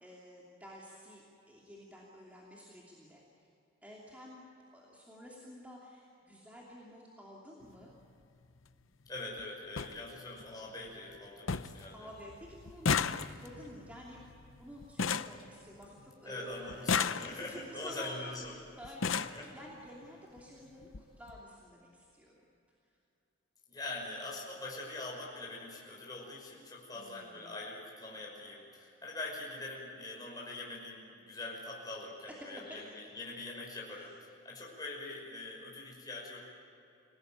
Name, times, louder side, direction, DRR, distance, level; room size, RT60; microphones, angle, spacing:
voice 1, 0.0-3.2 3.8-4.5 4.7-7.9 11.9-14.2 14.6-18.1 18.8-22.4 26.9-27.5 32.7-32.8 33.9-34.1, equal, 5° right, -4 dB, 2.9 m, -51 dB
sound 1, 7.6-7.8 9.1-9.2 9.4-9.5 9.8-9.9 10.4-10.9 11.1-11.2 11.5-11.9 12.1-16.1 16.7-17.7 18.5-18.6 18.8-19.4 20.4-20.5 20.8-21.0 21.3-21.4, left 6 dB, 70° left, 0.7 m, -34 dB
voice 2, 9.1-12.1 16.2-18.6 19.2-19.5 23.7-36.5, left 2 dB, 20° left, -3 dB, 5.8 m, -43 dB
27.5 x 18.0 x 9.1 m, 2.7 s
head